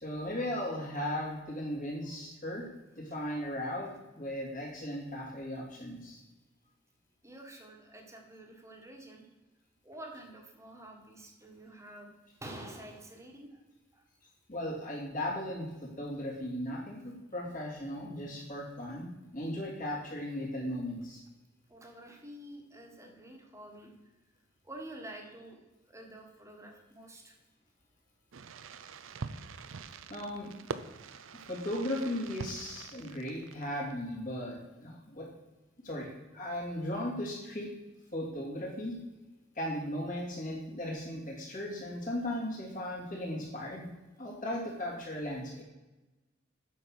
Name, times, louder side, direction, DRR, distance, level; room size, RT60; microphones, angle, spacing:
voice 1, 0.0-2.7 3.0-3.9 4.1-6.2 14.5-21.2 30.1-30.5 31.5-35.3 35.8-37.7 38.1-38.9 39.5-43.8 44.2-45.6, left 1 dB, 45° left, -3 dB, 2.9 m, -37 dB
voice 2, 7.2-9.3 9.8-12.1 12.4-13.6 13.9-14.0 21.7-23.9 24.6-27.3, right 1 dB, 15° right, 2 dB, 1.5 m, -48 dB
Fireworks, 28.3-33.9, right 5 dB, 90° right, 0.5 m, -44 dB
8.5 x 5.8 x 6.4 m, 1.1 s
head